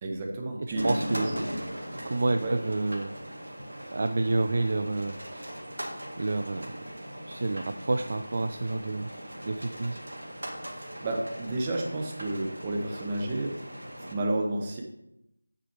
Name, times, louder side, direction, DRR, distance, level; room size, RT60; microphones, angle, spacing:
voice 1, 0.0-0.9 1.2-1.4 2.4-2.5 10.7-13.6 14.1-14.8, right 2 dB, 20° right, 1 dB, 1.1 m, -31 dB
voice 2, 0.7-1.3 2.0-3.3 3.9-5.5 6.2-6.8 7.3-9.1 9.4-10.0, right 2 dB, 40° right, 8 dB, 0.4 m, -29 dB
sound 1, 0.7-14.1, right 1 dB, 65° right, 2.0 m, -39 dB
8.5 x 6.4 x 4.8 m, 0.86 s
figure-of-eight pair, 165°, 0 cm